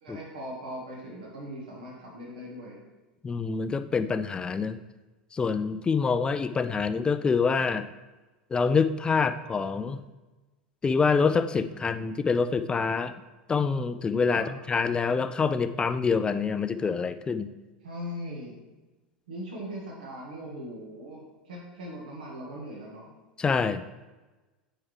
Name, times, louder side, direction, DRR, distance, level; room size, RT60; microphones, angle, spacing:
voice 1, 0.0-2.8 14.3-14.5 17.8-18.6 19.3-23.1, equal, 70° right, -3 dB, 1.7 m, -40 dB
voice 2, 3.2-4.8 5.3-7.9 8.5-10.0 10.8-13.1 13.5-17.5 23.4-23.8, left 5 dB, 20° left, 11 dB, 0.4 m, -26 dB
8.7 x 4.6 x 3.3 m, 1.2 s
figure-of-eight pair, 80°, 5 cm